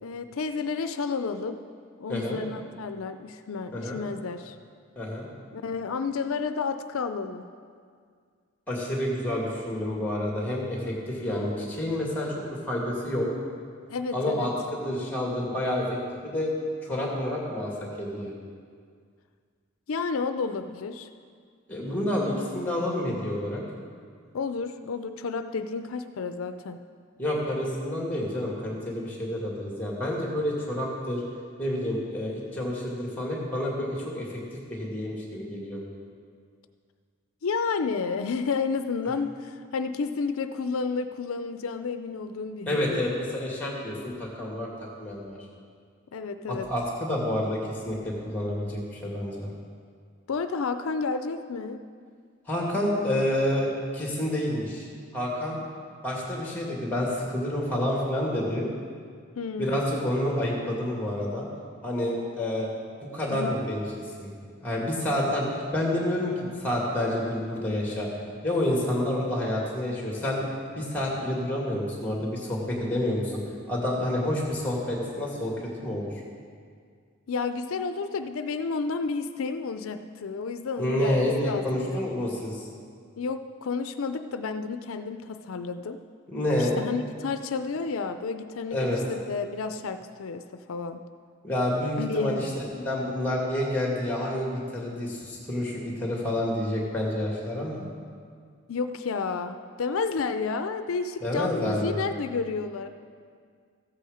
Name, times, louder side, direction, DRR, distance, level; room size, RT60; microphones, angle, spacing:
voice 1, 0.0-1.6 2.0-4.6 5.5-7.4 13.9-14.5 19.9-21.1 24.3-26.8 37.4-43.1 46.1-46.7 50.3-51.8 59.4-59.9 63.3-63.6 77.3-82.0 83.2-86.0 86.6-90.4 90.7-91.0 92.0-92.5 98.7-102.9, left 4 dB, 85° left, 9 dB, 0.5 m, -31 dB
voice 2, 2.1-2.4 3.7-4.0 5.0-5.3 8.7-13.3 14.1-15.8 16.2-16.5 16.8-17.7 18.0-18.3 21.7-23.6 27.2-31.2 31.6-34.4 34.7-35.8 42.7-44.7 45.0-45.4 46.5-49.5 52.5-54.9 55.1-55.6 56.0-58.7 59.6-61.5 61.8-62.7 63.1-63.8 64.2-64.3 64.6-65.5 65.7-68.1 68.4-70.4 70.8-73.4 73.7-76.1 80.8-82.7 86.3-86.8 88.7-89.0 91.4-97.8 101.2-102.0, left 1 dB, 10° left, -2 dB, 2.2 m, -29 dB
14.5 x 8.5 x 5.0 m, 2.1 s
head